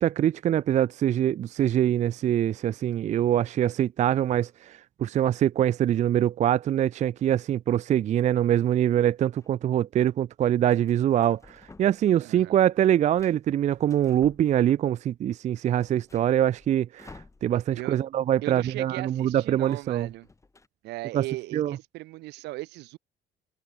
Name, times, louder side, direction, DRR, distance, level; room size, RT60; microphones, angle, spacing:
voice 1, 0.0-20.1 21.1-21.2 21.5-21.8, right 11 dB, 45° right, 0.4 m, -24 dB
sound 1, 8.7-9.5 10.7-12.2 12.5-15.0 15.3-15.4 15.7-17.9 18.1-18.3 18.6-20.7, left 3 dB, 15° left, 5.0 m, -54 dB
voice 2, 12.2-12.6 17.7-18.0 18.4-20.3 20.8-23.0, right 19 dB, 85° right, 2.3 m, -37 dB
cardioid pair, 110°, 17 cm